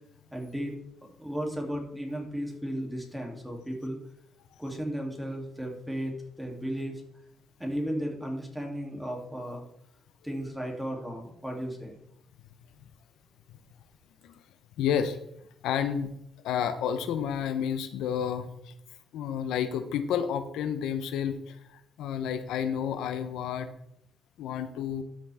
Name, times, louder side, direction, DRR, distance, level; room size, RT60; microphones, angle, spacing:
voice 1, 0.3-0.7 1.2-4.0 4.6-7.0 7.6-9.6 10.2-12.0, equal, 5° right, 0 dB, 2.7 m, -34 dB
voice 2, 14.8-15.2 15.6-16.1 16.4-18.7 19.1-23.7 24.4-25.0, left 8 dB, 85° left, 9 dB, 0.8 m, -30 dB
12.5 x 6.2 x 3.5 m, 0.76 s
cardioid pair, 90°, 0 cm